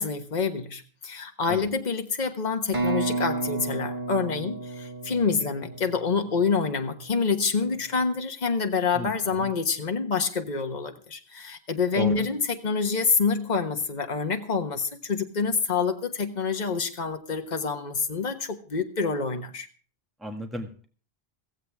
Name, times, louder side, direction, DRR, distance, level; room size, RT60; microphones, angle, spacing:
voice 1, 0.0-19.7, left 5 dB, 45° left, 6 dB, 1.4 m, -27 dB
sound 1, 2.7-6.5, right 3 dB, 55° right, 2.1 m, -32 dB
voice 2, 20.2-20.9, right 1 dB, ahead, 4 dB, 1.5 m, -33 dB
16.0 x 15.0 x 3.5 m, 0.39 s
omnidirectional pair, 1.0 m